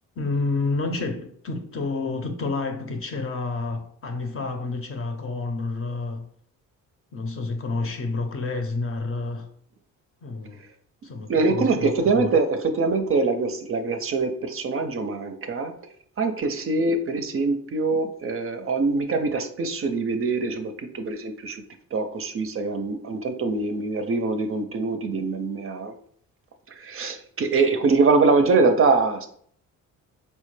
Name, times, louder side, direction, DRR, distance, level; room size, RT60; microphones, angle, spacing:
voice 1, 0.2-6.3 7.1-9.5 10.2-10.6 11.0-11.3 11.6-11.7 12.1-12.3, left 3 dB, 40° left, 0.6 m, -29 dB
voice 2, 11.3-15.7 16.2-21.6 21.9-25.9 26.7-29.3, right 3 dB, 40° right, 0.5 m, -23 dB
4.4 x 2.1 x 3.1 m
cardioid pair, 85°, 33 cm